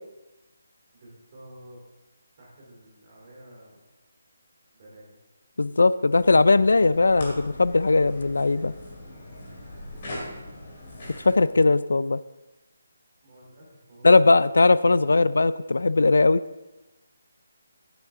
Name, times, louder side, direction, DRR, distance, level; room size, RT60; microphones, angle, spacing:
voice 1, 0.9-1.8 2.4-3.8 4.7-5.2 9.3-10.6 13.2-15.1, right 1 dB, 25° right, -5 dB, 3.2 m, -50 dB
voice 2, 5.6-8.7 11.2-12.2 14.0-16.4, left 3 dB, 90° left, 17 dB, 0.4 m, -19 dB
sound 1, 6.1-11.3, left 1 dB, 25° left, 2.7 m, -40 dB
12.0 x 9.6 x 3.7 m, 1.1 s
hypercardioid pair, 180°, 0 cm